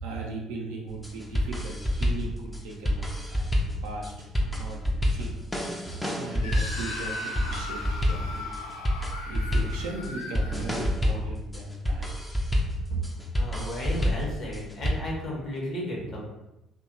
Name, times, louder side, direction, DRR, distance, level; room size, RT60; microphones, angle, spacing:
voice 1, 0.0-4.1 4.4-5.5 5.8-8.6 9.2-12.1, right 2 dB, 70° right, -1 dB, 0.5 m, -38 dB
sound 1, 0.9-14.9, equal, 5° left, 0.5 m, -28 dB
Screaming, 6.4-11.3, left 2 dB, 75° left, 0.4 m, -38 dB
voice 2, 13.3-16.2, equal, 50° left, -3 dB, 0.9 m, -33 dB
2.7 x 2.2 x 2.5 m, 0.95 s
figure-of-eight pair, 50°, 0 cm